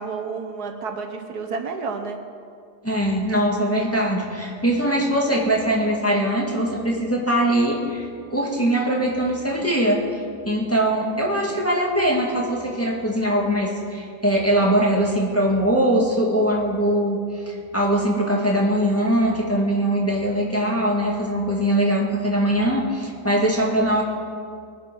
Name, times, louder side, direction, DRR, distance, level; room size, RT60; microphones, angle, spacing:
voice 1, 0.0-2.2, right 4 dB, 70° right, 6 dB, 1.5 m, -30 dB
voice 2, 2.8-10.2 10.5-24.0, right 1 dB, 10° left, -2 dB, 2.0 m, -21 dB
20.0 x 10.0 x 6.1 m, 2.4 s
omnidirectional pair, 1.8 m